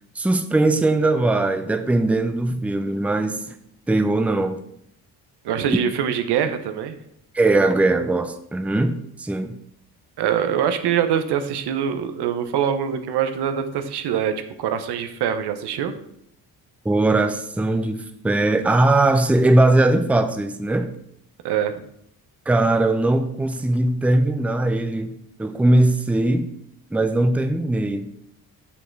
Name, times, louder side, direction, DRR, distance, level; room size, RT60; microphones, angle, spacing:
voice 1, 0.2-3.6 3.9-4.6 7.3-9.6 16.8-20.9 22.5-26.5 26.9-28.1, right 2 dB, 5° right, 8 dB, 0.5 m, -20 dB
voice 2, 5.4-7.0 10.2-14.3 14.6-15.9 21.4-21.7, right 9 dB, 90° right, 8 dB, 0.9 m, -23 dB
6.4 x 5.7 x 4.5 m, 0.72 s
cardioid pair, 115°, 39 cm